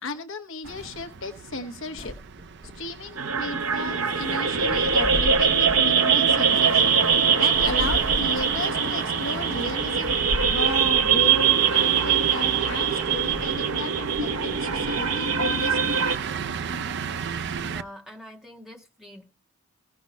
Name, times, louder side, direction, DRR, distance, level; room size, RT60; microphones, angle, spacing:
voice 1, 0.0-2.2 2.7-6.9 7.4-16.0, left 2 dB, 60° left, 1.0 m, -34 dB
sound 1, 0.6-17.8, right 6 dB, 50° right, 0.5 m, -34 dB
sound 2, 2.0-3.2 4.0-5.9 6.4-8.6 9.3-9.4 10.0-11.1 11.7-12.0 12.4-13.8, left 1 dB, 35° left, 1.5 m, -36 dB
sound 3, 3.2-16.2, right 6 dB, 70° right, 1.0 m, -22 dB
voice 2, 17.6-19.2, left 1 dB, ahead, 1.5 m, -44 dB
16.5 x 6.0 x 4.1 m
head